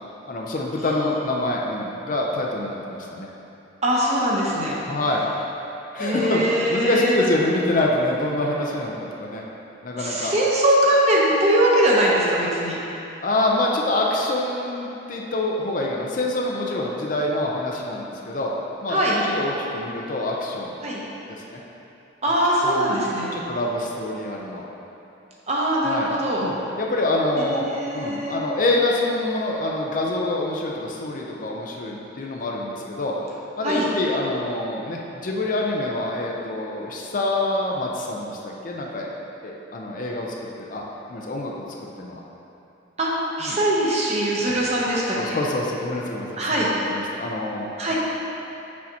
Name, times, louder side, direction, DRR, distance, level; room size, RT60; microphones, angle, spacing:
voice 1, 0.3-3.3 4.8-5.2 5.9-6.4 6.7-9.4 9.8-10.3 13.2-18.5 18.8-20.8 21.3-21.6 22.6-23.0 23.3-24.6 25.8-26.1 26.4-33.1 33.6-39.1 39.4-40.8 41.1-41.7 42.0-42.2 43.4-43.6 45.1-47.9, left 2 dB, 40° left, -1 dB, 0.5 m, -26 dB
voice 2, 3.8-4.8 6.0-7.1 10.0-12.8 18.9-19.2 20.8-21.0 22.2-23.3 25.5-26.4 27.5-28.4 33.6-33.9 43.0-43.1 43.4-45.2 46.4-46.7 47.8-47.9, right 1 dB, 35° right, -5 dB, 0.8 m, -21 dB
6.3 x 5.6 x 2.8 m, 3.0 s
head